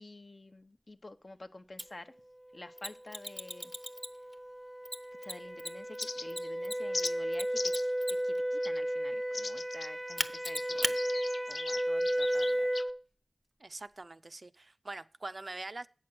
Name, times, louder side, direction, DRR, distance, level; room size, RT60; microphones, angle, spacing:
voice 1, 0.0-2.1 2.5-3.7 5.2-7.7 8.2-11.0 11.5-12.7, left 2 dB, 50° left, 0.8 m, -50 dB
Mechanisms, 1.8-1.9 2.8-4.3 4.9-8.4 10.2-11.0, left 1 dB, 15° left, 0.8 m, -36 dB
sound 1, 3.1-13.0, equal, 10° right, 0.6 m, -34 dB
sound 2, 6.0-6.5 6.9-7.1 7.6-7.9 8.6-8.8 9.3-12.9, left 3 dB, 85° left, 0.4 m, -39 dB
voice 2, 13.6-15.9, right 2 dB, 55° right, 0.4 m, -43 dB
8.5 x 6.0 x 7.7 m
wide cardioid pair, 60°, 0 cm